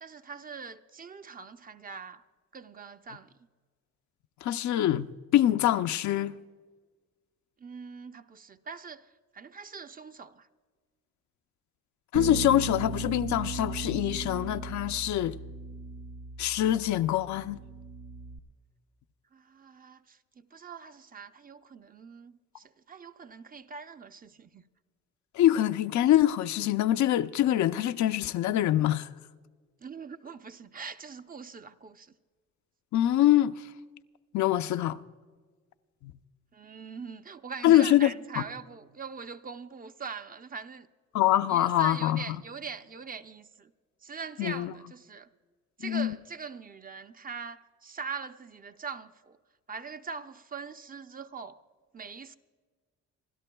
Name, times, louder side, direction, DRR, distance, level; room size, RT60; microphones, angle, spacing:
voice 1, 0.0-2.2 2.5-3.3 7.6-10.5 19.3-24.7 29.8-32.1 36.5-40.9 41.5-43.7 44.0-45.3 45.8-49.4 49.7-51.6 51.9-52.4, right 5 dB, 30° right, 0.6 m, -42 dB
voice 2, 4.4-6.4 12.1-15.4 16.4-17.6 25.3-29.1 32.9-33.5 34.3-35.0 36.0-36.1 37.6-38.1 38.4-38.5 41.1-42.4 44.4-44.7 45.8-46.1, left 13 dB, 70° left, 0.5 m, -24 dB
Bass guitar, 12.1-18.4, right 5 dB, 70° right, 0.7 m, -38 dB
27.5 x 12.5 x 2.3 m
cardioid pair, 90°, 30 cm